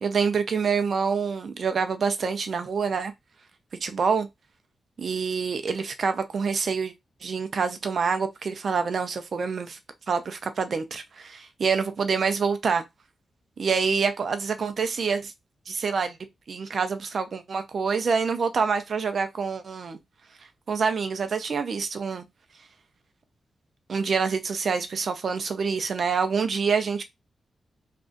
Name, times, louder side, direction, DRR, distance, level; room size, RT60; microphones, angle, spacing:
voice 1, 0.0-3.1 3.8-4.3 5.0-6.9 7.2-9.8 10.1-12.8 13.6-15.3 15.7-16.2 16.5-20.0 20.7-22.2 23.9-27.0, right 5 dB, 60° right, 0.5 m, -26 dB
2.6 x 2.3 x 3.7 m
cardioid pair, 80°, 0 cm